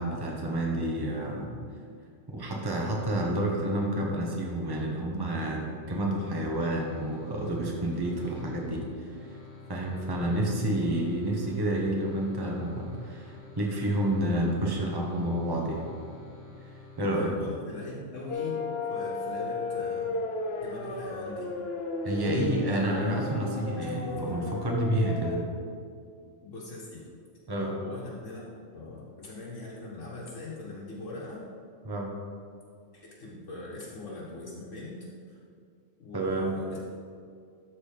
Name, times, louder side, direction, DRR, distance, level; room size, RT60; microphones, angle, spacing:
voice 1, 0.0-1.5 2.3-8.8 9.3-9.4 9.7-15.8 17.0-17.3 22.0-25.4 27.5-27.7 31.8-32.1 36.1-36.5, right 1 dB, 20° right, -1 dB, 1.1 m, -29 dB
sound 1, 6.4-17.8, left 3 dB, 15° left, 0.9 m, -49 dB
voice 2, 17.0-18.6 18.9-20.2 20.6-21.5 22.7-23.4 23.7-24.6 26.4-27.0 27.8-28.4 28.7-31.4 32.9-35.4 36.0-36.8, left 2 dB, 75° left, -5 dB, 1.7 m, -41 dB
sound 2, 18.3-25.5, left 3 dB, 55° left, 1.0 m, -34 dB
12.5 x 4.2 x 5.0 m, 2.3 s
omnidirectional pair, 1.3 m